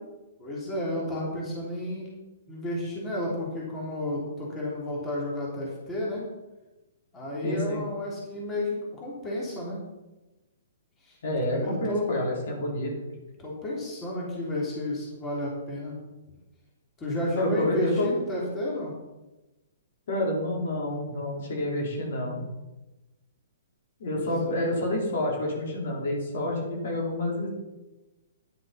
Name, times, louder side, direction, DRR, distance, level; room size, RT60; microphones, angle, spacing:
voice 1, 0.4-2.2 2.5-6.2 7.1-9.8 11.0-11.2 11.4-12.1 13.4-16.0 17.0-18.9 24.1-24.7, left 1 dB, 20° left, -4 dB, 3.3 m, -32 dB
voice 2, 7.4-7.8 11.2-12.9 17.4-18.1 20.1-22.4 24.0-27.5, left 1 dB, 50° left, -2 dB, 3.6 m, -28 dB
10.5 x 7.6 x 5.6 m, 1.1 s
figure-of-eight pair, 115°, 0 cm